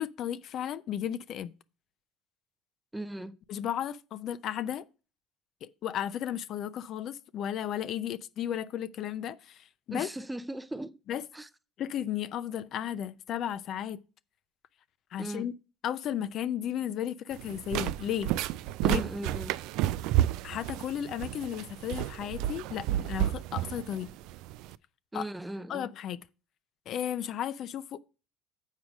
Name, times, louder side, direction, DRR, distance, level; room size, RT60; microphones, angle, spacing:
voice 1, 0.0-1.5 3.5-4.8 5.6-10.1 11.1-11.2 11.8-14.0 15.1-15.5 15.8-18.3 18.8-19.0 20.4-24.1 25.1-25.3 25.7-26.2 26.9-28.0, left 10 dB, 55° left, 0.5 m, -34 dB
voice 2, 2.9-3.4 9.9-11.0 11.3-11.5 15.2-15.5 18.8-19.6 25.1-25.9, right 1 dB, 10° right, 0.5 m, -38 dB
sound 1, 17.3-24.7, right 13 dB, 70° right, 0.3 m, -31 dB
7.4 x 4.8 x 6.2 m
supercardioid pair, 85°, 0 cm